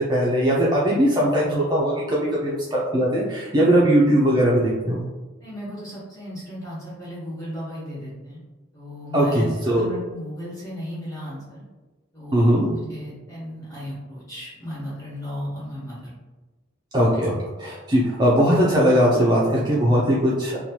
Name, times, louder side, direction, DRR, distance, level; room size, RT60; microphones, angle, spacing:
voice 1, 0.1-5.0 9.1-9.8 12.3-12.7 16.9-17.3 17.6-20.6, equal, 20° right, -5 dB, 0.3 m, -19 dB
voice 2, 5.4-8.4 8.7-11.6 12.1-16.1, equal, 15° left, -8 dB, 1.0 m, -35 dB
2.9 x 2.2 x 2.8 m, 1.2 s
head